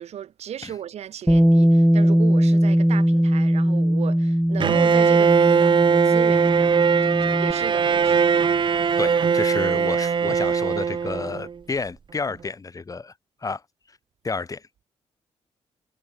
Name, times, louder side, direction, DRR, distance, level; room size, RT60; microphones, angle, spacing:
voice 1, 0.0-8.3, right 10 dB, 70° right, 1.7 m, -35 dB
Bass guitar, 1.3-7.5, equal, ahead, 0.8 m, -20 dB
Bowed string instrument, 4.6-11.5, right 6 dB, 45° right, 1.3 m, -20 dB
voice 2, 9.0-13.1 13.4-13.6 14.2-14.8, left 4 dB, 30° left, 3.5 m, -31 dB
cardioid pair, 90°, 11 cm